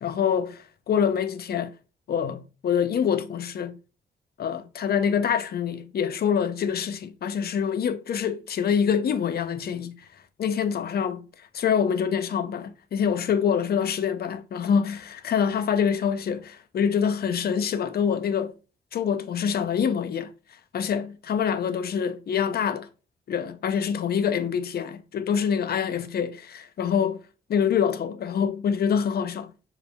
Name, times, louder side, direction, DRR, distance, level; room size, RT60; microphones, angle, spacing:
voice 1, 0.0-1.7 2.1-3.8 4.4-10.0 10.4-11.2 11.5-18.5 18.9-20.3 20.7-22.9 23.3-27.2 27.5-29.5, left 7 dB, 60° left, 0.5 m, -25 dB
5.1 x 4.5 x 2.2 m
cardioid pair, 70°, 18 cm